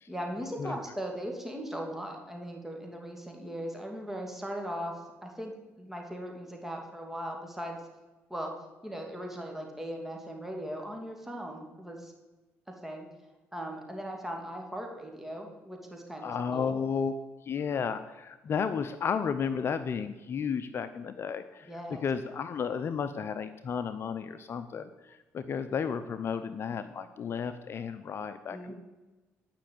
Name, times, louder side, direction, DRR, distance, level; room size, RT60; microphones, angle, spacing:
voice 1, 0.1-4.9 5.2-7.8 8.3-8.5 8.8-12.1 12.8-13.1 13.5-16.8 21.7-22.0 28.5-28.7, equal, 5° right, 1 dB, 2.7 m, -38 dB
voice 2, 16.2-17.1 17.4-21.7 22.0-28.7, left 6 dB, 50° left, 11 dB, 0.6 m, -33 dB
10.5 x 6.1 x 8.8 m, 1.1 s
cardioid pair, 80°, 5 cm